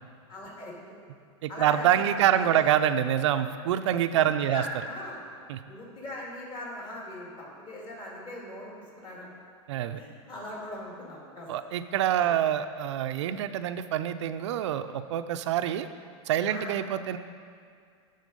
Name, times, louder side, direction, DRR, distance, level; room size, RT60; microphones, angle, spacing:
voice 1, 0.3-0.9 1.5-2.7 4.1-5.2 5.7-9.3 9.9-11.5 12.2-12.4 16.5-16.8, left 1 dB, 35° left, -4 dB, 2.3 m, -40 dB
voice 2, 1.4-4.6 5.5-5.6 9.7-10.0 11.5-15.9 16.3-17.2, right 10 dB, 80° right, 10 dB, 0.4 m, -26 dB
11.5 x 3.9 x 5.3 m, 2.1 s
supercardioid pair, 130°, 15 cm